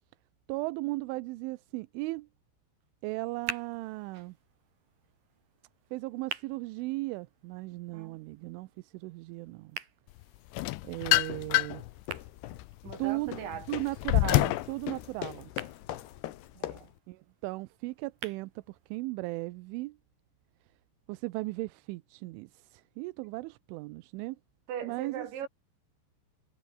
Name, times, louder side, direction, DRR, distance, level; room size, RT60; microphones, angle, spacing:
voice 1, 0.5-2.3 3.0-4.4 5.9-9.8 10.8-11.8 13.0-15.5 17.1-20.0 21.1-24.4 24.8-25.3, right 21 dB, 85° right, 3.1 m, -36 dB
sound 1, 3.0-19.0, right 7 dB, 50° right, 4.9 m, -48 dB
sound 2, 10.5-11.9 12.4-14.7, left 20 dB, 85° left, 2.9 m, -26 dB
sound 3, 11.1-17.0, left 14 dB, 70° left, 3.1 m, -42 dB
voice 2, 12.8-13.7 16.6-16.9 24.7-25.5, right 8 dB, 70° right, 5.7 m, -40 dB
omnidirectional pair, 5.6 m